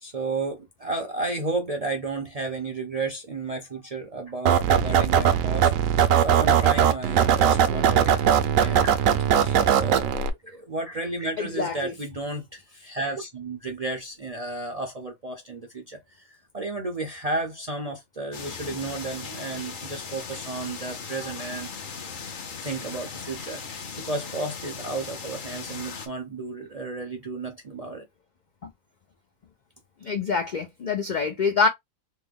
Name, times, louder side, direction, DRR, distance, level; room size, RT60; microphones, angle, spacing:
voice 1, 0.0-9.1 9.4-21.7 22.6-28.1, right 2 dB, 50° right, 0.4 m, -33 dB
sound 1, 4.5-10.3, right 9 dB, 75° right, 0.9 m, -20 dB
voice 2, 11.4-11.9 28.6-28.7 30.0-31.7, left 5 dB, 75° left, 0.4 m, -25 dB
sound 2, 18.3-26.1, left 5 dB, 45° left, 0.7 m, -38 dB
3.3 x 2.1 x 3.4 m
omnidirectional pair, 1.4 m